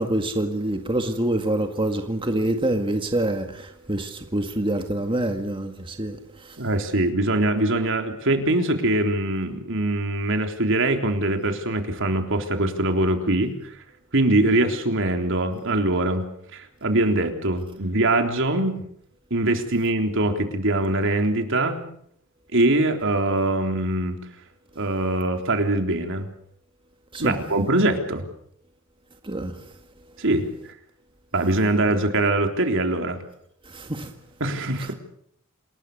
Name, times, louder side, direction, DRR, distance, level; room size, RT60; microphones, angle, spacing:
voice 1, 0.0-6.6 27.1-27.4 29.2-29.6 33.7-34.1, right 1 dB, 25° right, 1.9 m, -26 dB
voice 2, 6.6-13.7 14.1-16.2 16.5-18.8 19.3-21.8 22.5-24.2 24.8-26.3 27.2-28.3 30.2-30.5 31.3-33.2 34.4-34.9, right 2 dB, 65° right, 3.6 m, -23 dB
28.5 x 20.0 x 6.7 m
head